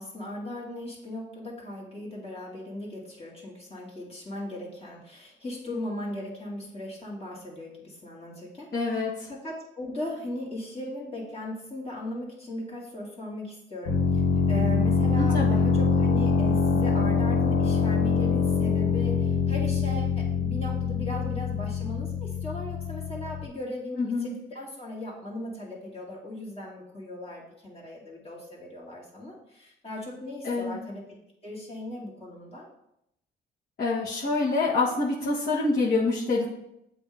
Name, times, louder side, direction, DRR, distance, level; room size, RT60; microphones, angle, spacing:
voice 1, 0.0-9.0 9.3-14.2 14.5-32.7, left 1 dB, 30° left, -4 dB, 2.3 m, -38 dB
voice 2, 8.7-9.1 15.2-15.6 24.0-24.3 30.4-30.8 33.8-36.5, left 3 dB, 50° left, -7 dB, 1.3 m, -26 dB
sound 1, 13.9-23.5, left 5 dB, 80° left, 1.6 m, -24 dB
7.7 x 2.8 x 5.0 m, 0.81 s
cardioid pair, 90°, 20 cm